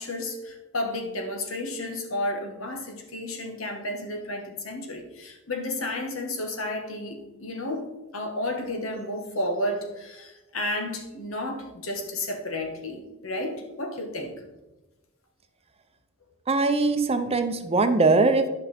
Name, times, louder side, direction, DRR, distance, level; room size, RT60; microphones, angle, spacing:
voice 1, 0.0-14.3, left 1 dB, 75° left, 4 dB, 1.5 m, -32 dB
voice 2, 16.5-18.5, right 3 dB, 30° right, 8 dB, 0.7 m, -21 dB
10.5 x 5.6 x 4.2 m, 1.0 s
head